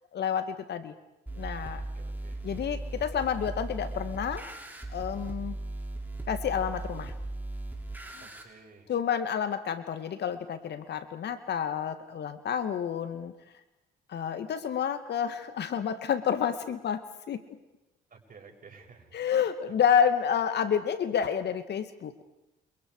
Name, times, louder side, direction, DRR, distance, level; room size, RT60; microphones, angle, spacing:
voice 1, 0.1-0.9 1.4-1.8 2.4-4.5 4.9-5.6 6.3-7.1 8.9-13.3 14.1-17.4 19.1-22.2, left 8 dB, 60° left, 10 dB, 2.4 m, -29 dB
sound 1, 1.3-8.4, right 2 dB, 10° right, 6.5 m, -37 dB
voice 2, 1.9-2.4 8.2-8.9 18.1-19.4 19.8-19.9, right 4 dB, 45° right, 2 dB, 7.9 m, -53 dB
29.5 x 29.0 x 5.0 m, 0.95 s
hypercardioid pair, 55°, 20 cm